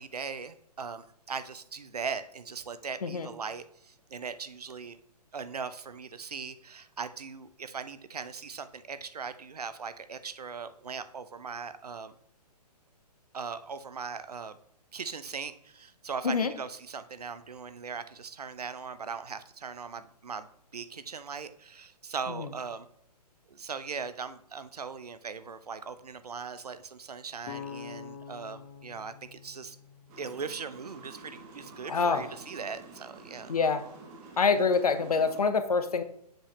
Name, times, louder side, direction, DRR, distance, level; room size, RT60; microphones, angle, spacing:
voice 1, 0.0-5.0 5.3-12.1 13.3-14.5 14.9-20.5 20.7-22.9 23.5-29.8 30.2-33.5, right 5 dB, 70° right, 12 dB, 0.7 m, -39 dB
sound 1, 27.4-31.3, left 7 dB, 30° left, 0.7 m, -46 dB
sound 2, 30.1-35.4, right 3 dB, 25° right, 1.0 m, -49 dB
voice 2, 31.9-32.3 33.5-33.8 34.4-36.0, left 5 dB, 65° left, 10 dB, 0.9 m, -26 dB
7.3 x 5.5 x 3.2 m, 0.71 s
figure-of-eight pair, 125°, 21 cm